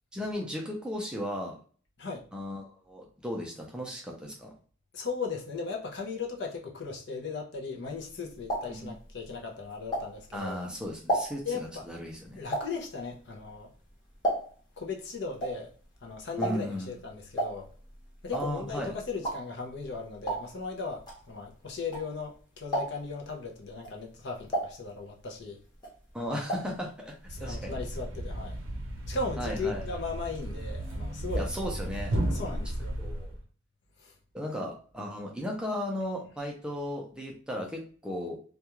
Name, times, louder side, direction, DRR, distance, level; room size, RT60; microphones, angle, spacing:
voice 1, 0.1-1.6 2.3-4.5 8.7-8.9 10.3-12.4 16.4-16.9 18.3-18.9 26.1-27.1 27.4-27.8 29.4-29.8 31.3-32.1 33.0-33.3 34.3-38.4, left 1 dB, 5° right, 0.4 m, -35 dB
voice 2, 4.9-10.6 11.4-11.9 12.4-13.7 14.8-15.7 16.0-17.7 18.2-25.6 27.3-28.6 29.1-31.5 32.3-33.0 34.0-34.1, left 4 dB, 60° left, 0.6 m, -37 dB
sound 1, 7.9-10.5 10.8-14.8 15.0-22.3 22.6-23.2 23.7-25.4 25.7-26.8 27.1-27.2 27.4-27.5, right 1 dB, 20° left, 0.9 m, -34 dB
Thump thud, 27.2-33.4, right 1 dB, 80° right, 0.6 m, -34 dB
2.3 x 2.3 x 2.9 m
head